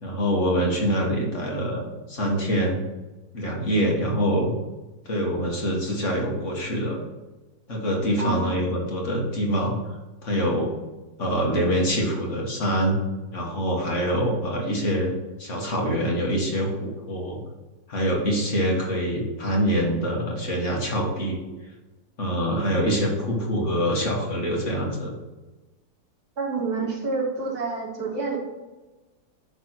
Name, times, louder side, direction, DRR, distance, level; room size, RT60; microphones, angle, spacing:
voice 1, 0.0-2.8 3.3-4.5 5.1-7.0 7.7-9.8 10.2-10.7 11.2-13.0 13.3-15.1 15.4-17.4 17.9-21.4 22.2-25.1, equal, 50° left, -1 dB, 2.1 m, -25 dB
voice 2, 8.2-8.6 26.4-28.4, right 4 dB, 70° right, -1 dB, 2.2 m, -28 dB
11.0 x 4.0 x 6.1 m, 1.2 s
omnidirectional pair, 1.7 m